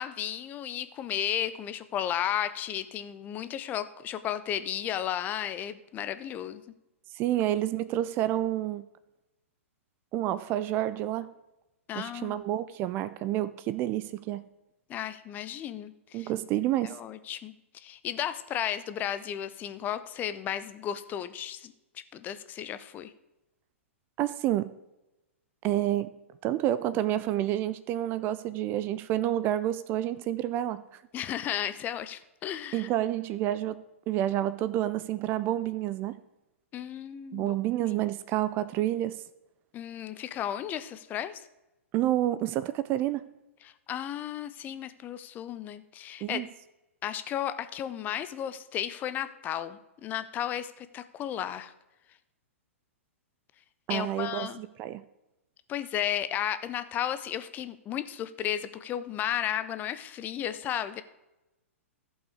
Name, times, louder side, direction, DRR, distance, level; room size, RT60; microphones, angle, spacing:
voice 1, 0.0-6.6 11.9-12.4 14.9-16.3 16.8-21.7 22.1-23.1 31.1-32.9 36.7-37.5 37.9-38.0 39.7-41.4 43.6-46.4 47.0-51.7 53.9-54.6 55.7-61.0, left 10 dB, 25° left, 12 dB, 0.6 m, -34 dB
voice 2, 7.1-8.8 10.1-11.3 12.0-14.4 16.1-17.0 24.2-24.7 25.6-26.1 26.4-30.8 32.7-36.2 37.3-39.2 41.9-43.2 46.2-46.4 53.9-55.0, right 13 dB, 30° right, 15 dB, 0.4 m, -29 dB
14.5 x 5.6 x 4.9 m, 0.97 s
figure-of-eight pair, 110°, 7 cm